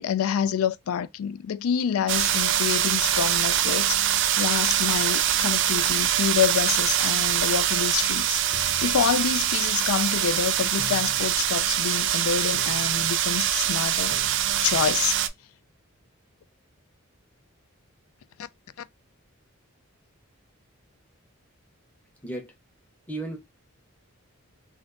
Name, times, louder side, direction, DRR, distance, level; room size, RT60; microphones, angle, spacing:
voice 1, 0.0-14.2 14.6-15.2, left 8 dB, 75° left, 0.3 m, -27 dB
sound 1, 2.1-15.3, right 11 dB, 55° right, 0.4 m, -24 dB
sound 2, 8.5-9.7 10.8-11.6 12.5-13.1 14.1-14.8, left 2 dB, 40° left, 1.1 m, -44 dB
voice 2, 22.2-22.5 23.1-23.4, right 2 dB, 5° left, 0.9 m, -33 dB
3.5 x 2.6 x 2.5 m
head